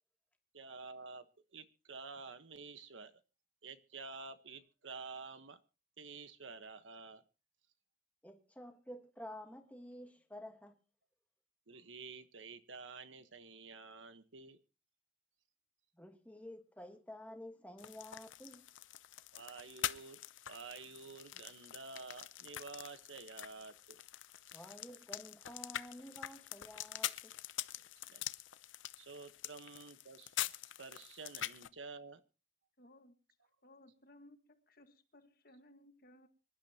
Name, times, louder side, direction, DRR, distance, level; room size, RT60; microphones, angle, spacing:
voice 1, 0.5-1.2 1.5-3.2 3.6-5.6 6.0-7.2 11.7-14.6 19.3-20.2 20.5-24.0 28.1-28.2 29.0-30.4 30.8-32.2, right 4 dB, 85° right, 1.3 m, -50 dB
voice 2, 8.2-10.8 16.0-18.6 24.5-27.3, left 1 dB, 10° left, 1.5 m, -51 dB
sound 1, 17.8-31.7, left 12 dB, 90° left, 0.7 m, -45 dB
voice 3, 32.8-33.1 33.6-36.3, left 1 dB, 50° left, 1.8 m, -61 dB
26.0 x 11.5 x 2.9 m
head